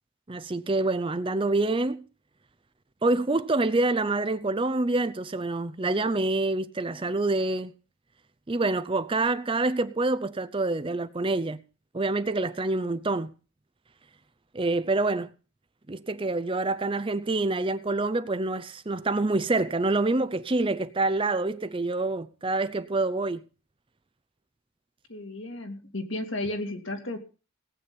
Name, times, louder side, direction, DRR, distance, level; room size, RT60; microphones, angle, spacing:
voice 1, 0.3-2.0 3.0-7.7 8.5-11.6 11.9-13.3 14.5-15.3 15.9-23.4, right 2 dB, 25° right, 0.6 m, -26 dB
voice 2, 25.1-27.2, left 2 dB, 60° left, 2.6 m, -33 dB
18.5 x 8.5 x 5.4 m
head